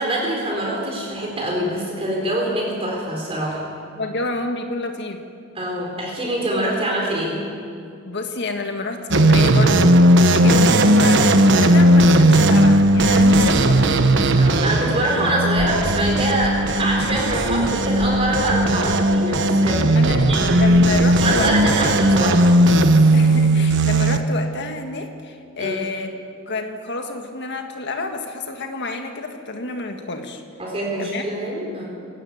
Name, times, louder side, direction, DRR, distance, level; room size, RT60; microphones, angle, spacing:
voice 1, 0.0-3.6 5.5-7.4 10.2-10.4 14.4-20.6 21.2-22.5 25.6-25.8 30.6-31.9, right 1 dB, 30° right, -2 dB, 4.1 m, -24 dB
voice 2, 3.9-5.2 8.0-10.0 10.3-14.0 19.9-22.0 23.1-26.2 26.5-30.4 31.0-31.3, left 2 dB, 55° left, 5 dB, 1.7 m, -29 dB
sound 1, 9.1-24.2, right 1 dB, 60° right, 1.1 m, -16 dB
sound 2, 12.6-15.3 15.5-22.8, equal, 15° left, 3.2 m, -34 dB
19.0 x 17.0 x 9.5 m, 2.4 s
head